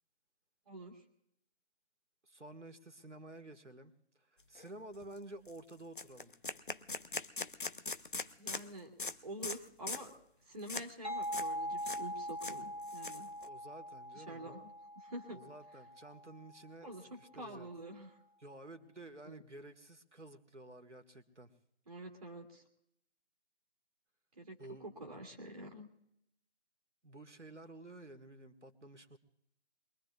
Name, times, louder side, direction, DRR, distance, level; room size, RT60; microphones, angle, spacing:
voice 1, 0.7-1.0 8.4-8.9 9.2-10.1 10.5-13.3 14.1-15.4 16.8-18.2 19.2-19.4 21.9-22.6 24.3-25.9, right 1 dB, 35° right, 2 dB, 2.0 m, -47 dB
voice 2, 2.2-3.9 4.3-6.3 13.4-14.6 15.3-17.7 18.4-21.5 24.6-24.9 27.0-29.2, right 2 dB, 85° right, 7 dB, 1.6 m, -52 dB
sound 1, 4.6-4.7 5.0-5.2 5.5-5.6 6.0-8.7 9.0-9.2 9.4-9.6 9.9-10.1 10.7-10.9 11.2-11.5 11.8-12.0 12.3-13.5, left 3 dB, 45° left, 0.6 m, -41 dB
sound 2, 11.0-16.5, equal, 65° right, 1.5 m, -42 dB
23.0 x 22.5 x 2.4 m, 0.76 s
figure-of-eight pair, 155°, 35 cm